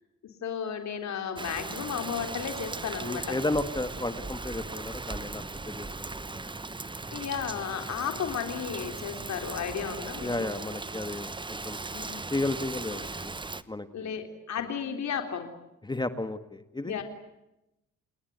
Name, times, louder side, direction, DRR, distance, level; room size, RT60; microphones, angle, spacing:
voice 1, 0.4-3.4 7.1-10.6 11.9-12.4 13.9-15.5 16.8-17.0, left 7 dB, 65° left, 5 dB, 3.9 m, -34 dB
Rain, 1.4-13.6, right 3 dB, 15° right, 1.1 m, -38 dB
voice 2, 3.0-6.5 10.2-11.8 12.3-13.3 13.7-14.1 15.8-16.9, left 2 dB, 15° left, 10 dB, 1.6 m, -33 dB
29.5 x 20.0 x 9.5 m, 0.90 s
cardioid pair, 90°, 30 cm